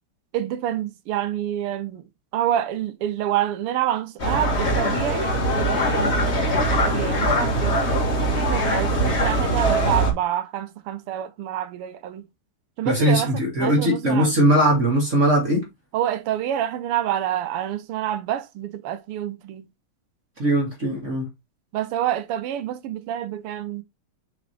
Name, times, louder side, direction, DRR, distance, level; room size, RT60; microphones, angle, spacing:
voice 1, 0.3-2.0 2.3-6.4 6.7-12.2 12.8-14.3 15.9-19.7 21.7-23.8, right 11 dB, 85° right, 1.8 m, -27 dB
sound 1, 4.2-10.1, right 1 dB, 35° left, 1.5 m, -22 dB
voice 2, 12.8-15.6 20.4-21.3, right 1 dB, 35° right, 2.3 m, -20 dB
6.7 x 4.4 x 3.3 m
omnidirectional pair, 2.4 m